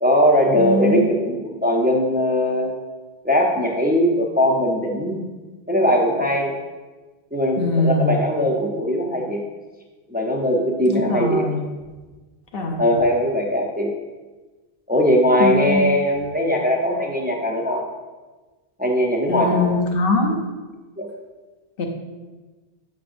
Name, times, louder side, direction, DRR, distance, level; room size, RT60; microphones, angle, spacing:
voice 1, 0.0-2.8 3.2-5.2 5.7-6.5 7.3-9.4 10.1-11.5 12.8-13.9 14.9-17.8 18.8-19.7 21.0-21.1, equal, 10° right, 0 dB, 0.5 m, -20 dB
voice 2, 0.6-1.1 7.6-8.1 10.9-11.6 12.5-12.8 15.4-15.8 19.3-20.4 21.8-21.9, left 2 dB, 65° left, 2 dB, 1.0 m, -22 dB
7.4 x 5.9 x 2.6 m, 1.3 s
omnidirectional pair, 1.1 m